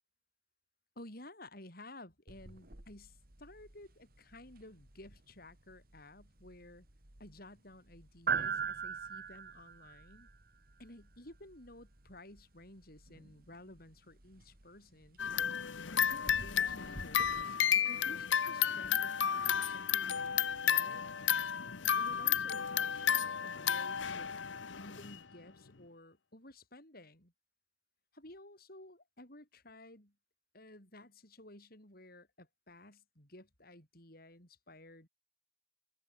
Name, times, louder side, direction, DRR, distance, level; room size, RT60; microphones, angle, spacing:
voice 1, 1.0-6.9 7.2-10.3 10.8-15.2 15.9-21.0 22.0-24.3 24.7-27.3 28.1-30.1 30.5-35.1, left 1 dB, 50° left, 7.8 m, -54 dB
sound 1, 2.3-17.4, right 6 dB, 50° right, 2.7 m, -44 dB
sound 2, 15.2-25.2, left 8 dB, 80° left, 1.0 m, -32 dB
open air
head